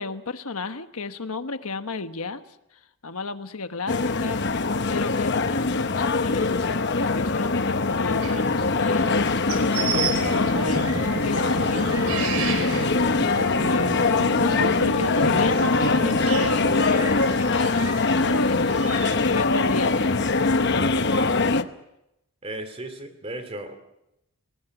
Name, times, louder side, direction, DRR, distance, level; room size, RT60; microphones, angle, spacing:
voice 1, 0.0-2.4 3.0-21.7, left 3 dB, 75° left, 9 dB, 1.3 m, -32 dB
sound 1, 3.9-21.6, left 3 dB, 50° left, 0.9 m, -23 dB
sound 2, 8.2-19.3, right 6 dB, 90° right, 4.6 m, -35 dB
sound 3, 9.8-16.7, equal, 65° right, 4.2 m, -32 dB
voice 2, 22.4-23.8, right 1 dB, 25° right, 8 dB, 2.7 m, -35 dB
30.0 x 19.5 x 6.0 m, 0.86 s
head